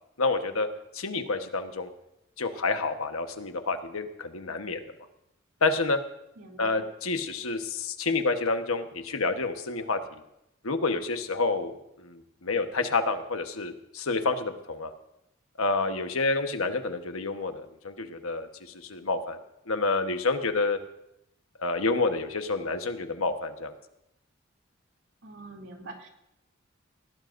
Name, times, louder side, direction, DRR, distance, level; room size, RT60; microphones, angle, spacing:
voice 1, 0.2-0.7 0.9-1.9 2.4-4.8 5.6-6.1 6.6-10.0 10.6-14.9 15.6-18.5 18.7-19.4 19.7-20.8 21.6-23.7, left 3 dB, 85° left, 7 dB, 1.2 m, -28 dB
voice 2, 6.4-6.8 25.2-26.1, right 2 dB, 65° right, 0 dB, 2.8 m, -44 dB
19.5 x 18.0 x 2.6 m, 0.85 s
head